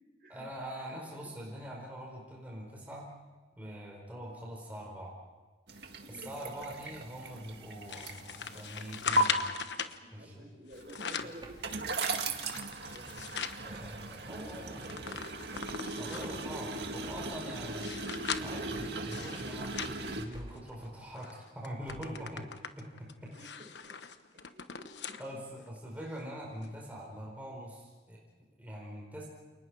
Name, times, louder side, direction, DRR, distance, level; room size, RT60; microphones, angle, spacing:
voice 1, 0.3-3.1 3.6-5.1 6.1-9.5 10.1-10.5 13.6-14.8 16.0-17.9 18.4-22.4 23.0-23.5 25.2-29.3, equal, 10° right, -3 dB, 4.7 m, -43 dB
sound 1, 5.7-9.2 10.7-20.2, right 2 dB, 70° right, 1.9 m, -37 dB
sound 2, 7.9-10.0 10.7-11.4 11.9-13.6 14.1-14.2 14.4-16.4 17.0-20.7 21.2-21.3 21.6-25.2 25.7-25.8 26.6-26.7, left 7 dB, 80° left, 1.2 m, -40 dB
voice 2, 9.8-12.6 12.9-13.4 14.3-15.2 22.0-22.5 23.3-23.9 24.5-25.2, right 1 dB, 50° right, 1 dB, 6.6 m, -51 dB
sound 3, 11.4-11.8 13.7-14.1 15.5-15.9 17.0-17.4 18.7-19.2 20.3-20.8 21.9-22.3, right 1 dB, 25° right, 2.8 m, -51 dB
29.0 x 29.0 x 4.8 m, 1.3 s
head